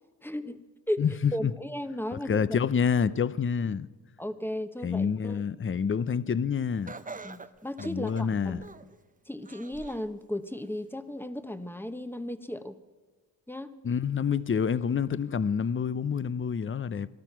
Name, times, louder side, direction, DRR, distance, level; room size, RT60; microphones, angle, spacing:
voice 1, 0.2-0.6 0.9-1.0 1.3-2.3 4.2-5.4 7.2-8.7 9.3-12.8 13.5-13.7, left 1 dB, 5° left, 0.9 m, -35 dB
voice 2, 1.0-1.5 2.1-3.9 4.8-6.9 7.8-8.6 13.8-17.1, left 6 dB, 30° left, 0.5 m, -28 dB
Laughter, 6.9-9.0 9.5-10.1 10.6-10.7 11.6-11.7, right 3 dB, 20° right, 0.7 m, -44 dB
18.5 x 12.5 x 6.0 m
cardioid pair, 65°, 43 cm